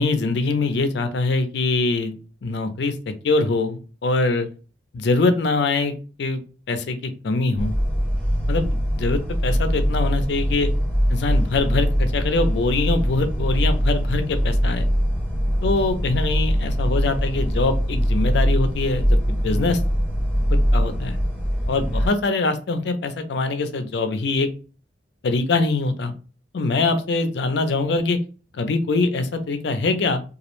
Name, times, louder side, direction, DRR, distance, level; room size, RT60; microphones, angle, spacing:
voice 1, 0.0-2.1 2.4-4.5 4.9-6.4 6.7-7.7 8.5-10.7 11.1-14.9 15.6-19.8 20.5-21.2 21.7-24.5 25.2-26.1 26.5-28.2 28.5-30.2, left 3 dB, 65° left, 8 dB, 0.4 m, -23 dB
sound 1, 7.6-22.1, equal, 5° right, 0.7 m, -22 dB
2.3 x 2.0 x 3.0 m, 0.35 s
head